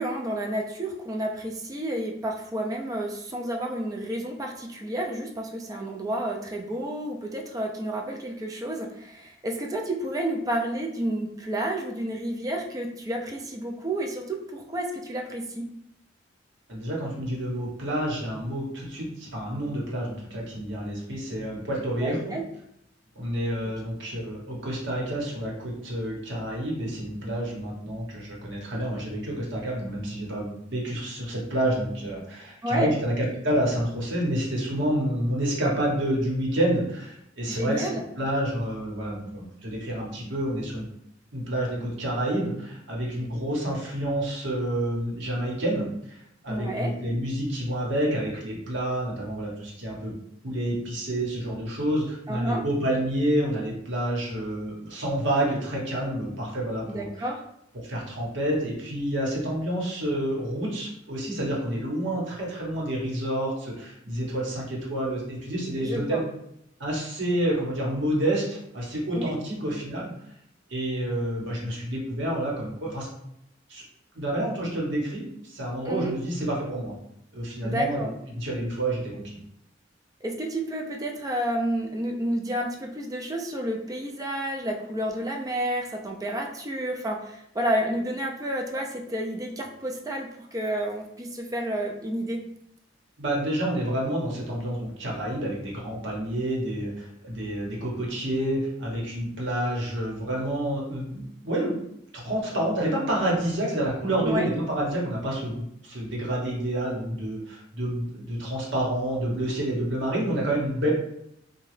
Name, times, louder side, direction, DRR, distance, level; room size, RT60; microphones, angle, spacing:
voice 1, 0.0-15.7 22.0-22.4 32.6-32.9 37.5-38.0 46.5-46.9 52.3-52.6 56.9-57.4 65.8-66.2 69.2-69.4 75.9-76.1 77.6-78.1 80.2-92.4 104.2-104.5, right 1 dB, 20° right, 1 dB, 0.4 m, -30 dB
voice 2, 16.7-22.3 23.1-37.9 38.2-40.9 41.3-46.2 46.4-50.1 50.4-57.1 57.7-66.2 66.8-70.1 70.7-73.1 73.7-73.8 74.1-76.9 77.3-78.1 78.3-79.4 93.2-101.8 102.1-110.9, right 1 dB, 75° right, -3 dB, 1.0 m, -28 dB
2.9 x 2.2 x 3.1 m, 0.76 s
head